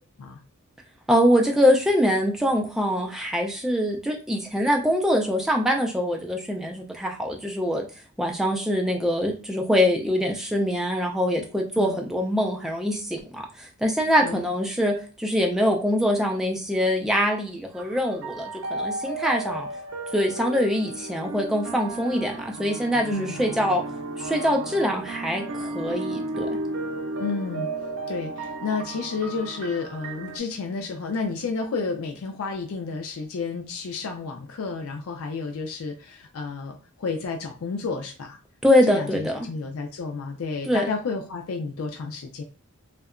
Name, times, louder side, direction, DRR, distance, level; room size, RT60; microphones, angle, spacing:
voice 1, 1.1-7.9 8.2-19.7 20.1-23.8 24.2-26.5 38.6-39.4 40.7-40.9, equal, ahead, 1 dB, 0.3 m, -24 dB
sound 1, 17.7-30.4, right 2 dB, 70° right, 0.4 m, -34 dB
voice 2, 27.2-27.7 28.1-38.4 38.9-42.4, left 4 dB, 75° left, 3 dB, 0.4 m, -31 dB
2.7 x 2.1 x 2.4 m, 0.38 s
head